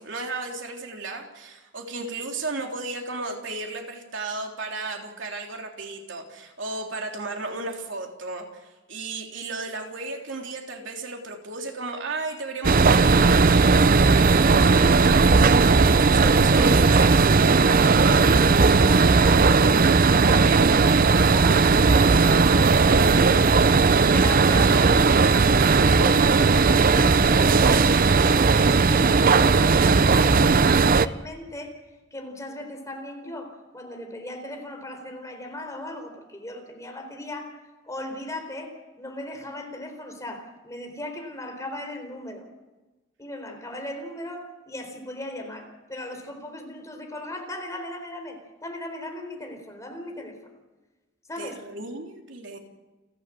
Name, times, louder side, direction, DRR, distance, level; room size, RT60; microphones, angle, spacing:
voice 1, 0.0-15.6 16.1-17.3 51.4-52.6, right 3 dB, 70° right, 2 dB, 3.5 m, -34 dB
sound 1, 12.6-31.1, right 4 dB, 45° right, 0.6 m, -17 dB
voice 2, 16.2-16.8 17.7-19.9 20.2-23.7 24.0-25.7 25.9-27.9 28.2-31.8 32.1-37.6 37.8-42.5 43.2-50.4 51.3-51.6, left 1 dB, 15° left, 4 dB, 4.1 m, -37 dB
29.5 x 11.5 x 7.7 m, 1.1 s
head